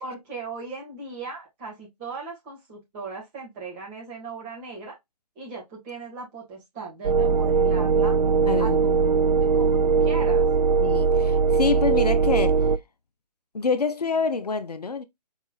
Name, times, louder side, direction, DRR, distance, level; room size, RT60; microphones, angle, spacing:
voice 1, 0.0-5.0 5.4-8.2 8.6-9.1 9.4-10.5, right 4 dB, 20° right, 2.0 m, -38 dB
sound 1, 7.0-12.8, right 5 dB, 75° right, 0.4 m, -20 dB
voice 2, 8.5-9.1 9.5-9.8 10.8-12.7 13.5-15.0, left 5 dB, 70° left, 0.6 m, -27 dB
4.7 x 3.7 x 2.4 m
figure-of-eight pair, 140°, 21 cm